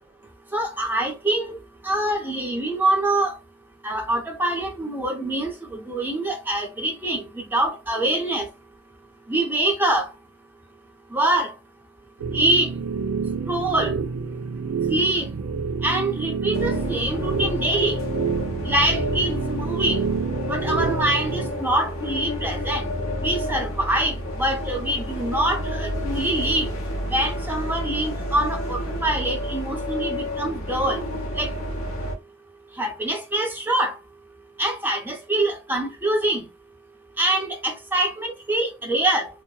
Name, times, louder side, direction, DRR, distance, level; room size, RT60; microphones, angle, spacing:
voice 1, 0.5-1.6 1.8-3.3 3.8-8.5 9.3-10.1 11.1-11.5 12.3-12.7 13.5-13.9 14.9-15.3 15.8-18.0 18.6-20.0 20.5-22.9 23.2-26.7 27.1-31.0 31.4-31.5 32.8-33.9 34.6-36.4 37.2-39.3, right 1 dB, 10° right, 0.5 m, -24 dB
sound 1, 12.2-21.5, right 5 dB, 85° right, 0.4 m, -28 dB
sound 2, 16.5-32.2, left 1 dB, 70° left, 0.7 m, -30 dB
2.8 x 2.1 x 2.2 m
head